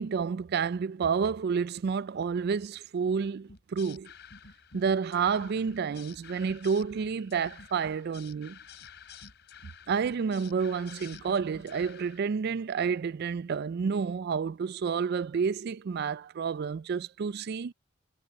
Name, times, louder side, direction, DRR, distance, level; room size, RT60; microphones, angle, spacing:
voice 1, 0.0-4.1 4.7-8.6 9.9-17.7, right 6 dB, 50° right, 0.4 m, -30 dB
sound 1, 3.5-12.2, left 6 dB, 55° left, 4.2 m, -50 dB
head